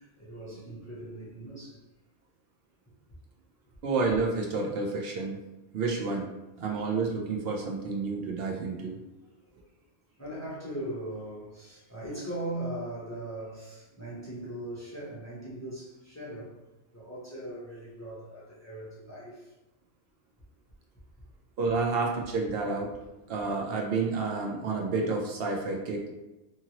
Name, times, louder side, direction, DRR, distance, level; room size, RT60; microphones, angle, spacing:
voice 1, 0.0-1.8 10.2-16.5 16.9-19.5, right 1 dB, 20° left, -7 dB, 0.6 m, -39 dB
voice 2, 3.8-5.4 5.7-6.3 6.6-9.0 21.6-22.9 23.3-26.1, right 4 dB, 70° right, 0 dB, 0.7 m, -30 dB
2.8 x 2.5 x 2.8 m, 1.0 s
omnidirectional pair, 1.1 m